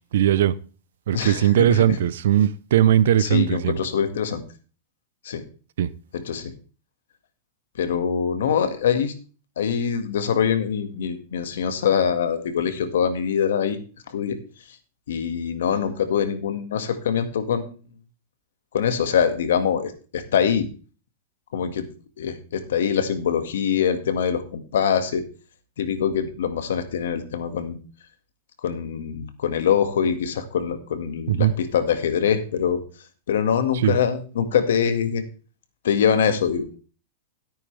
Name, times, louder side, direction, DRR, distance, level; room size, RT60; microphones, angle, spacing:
voice 1, 0.1-0.5 1.1-3.8 5.8-5.9 31.3-31.5 33.8-34.0, right 11 dB, 75° right, 0.7 m, -19 dB
voice 2, 1.1-1.8 3.2-4.4 5.2-5.4 6.1-6.5 7.8-9.1 9.6-13.8 14.1-14.4 15.1-17.7 18.7-20.7 21.5-21.9 22.2-25.2 25.8-27.8 28.6-32.8 33.3-35.2 35.8-36.7, left 7 dB, 90° left, 1.8 m, -23 dB
14.0 x 9.0 x 3.4 m
supercardioid pair, 155°, 0 cm